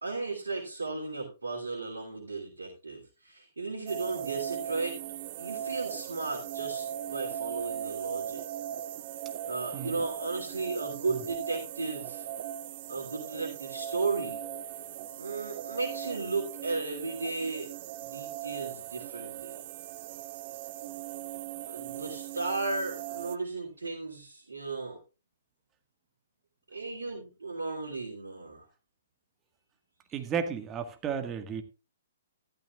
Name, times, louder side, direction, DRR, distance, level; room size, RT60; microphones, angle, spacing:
voice 1, 0.0-5.0 5.4-8.4 9.4-12.3 12.9-14.4 15.2-17.7 18.0-19.9 21.7-25.0 26.7-28.7, right 3 dB, 80° right, -3 dB, 3.0 m, -35 dB
sound 1, 3.9-23.4, right 11 dB, 45° right, 0.6 m, -39 dB
voice 2, 30.1-31.6, right 7 dB, 20° right, 7 dB, 1.6 m, -33 dB
14.0 x 12.5 x 2.4 m, 0.31 s
figure-of-eight pair, 120°, 0 cm